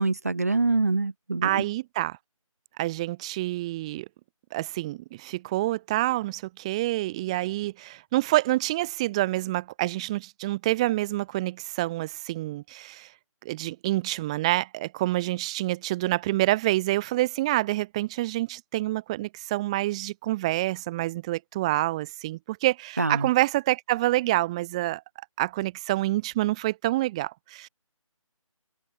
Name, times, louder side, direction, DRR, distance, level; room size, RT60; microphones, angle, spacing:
voice 1, 0.0-1.6 23.0-23.3, right 3 dB, 25° right, 0.7 m, -25 dB
voice 2, 1.4-2.2 2.8-4.1 4.5-13.1 13.4-25.0 25.4-27.7, right 17 dB, 10° right, 3.8 m, -27 dB
figure-of-eight pair, 175°, 18 cm